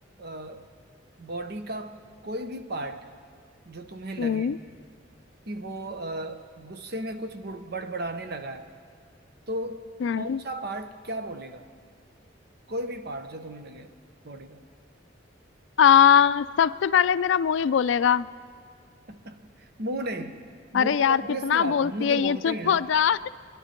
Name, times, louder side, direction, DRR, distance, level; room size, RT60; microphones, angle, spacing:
voice 1, 0.2-0.7 1.2-2.0 2.2-3.1 3.6-4.6 5.5-8.7 9.5-9.8 10.1-11.7 12.7-13.9 14.2-14.7 19.1-22.9, right 1 dB, 55° right, 8 dB, 0.9 m, -35 dB
voice 2, 4.2-4.6 10.0-10.4 15.8-18.3 20.7-23.3, left 8 dB, 75° left, 15 dB, 0.4 m, -21 dB
24.5 x 11.5 x 4.5 m, 2.1 s
head